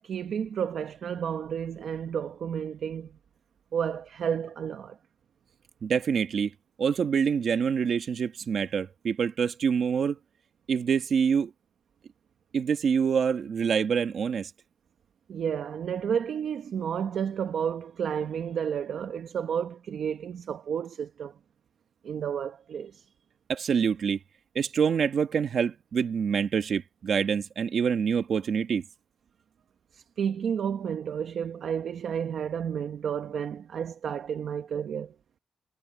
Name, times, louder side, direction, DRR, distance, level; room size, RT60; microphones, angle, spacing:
voice 1, 0.0-3.2 3.7-5.0 15.3-21.4 22.0-23.1 29.9-35.1, right 8 dB, 85° right, 1.4 m, -31 dB
voice 2, 5.8-6.5 6.8-10.2 10.7-11.5 12.5-14.5 23.5-24.2 24.5-28.8, right 6 dB, 65° right, 1.4 m, -26 dB
wide cardioid pair, 135°, 0 cm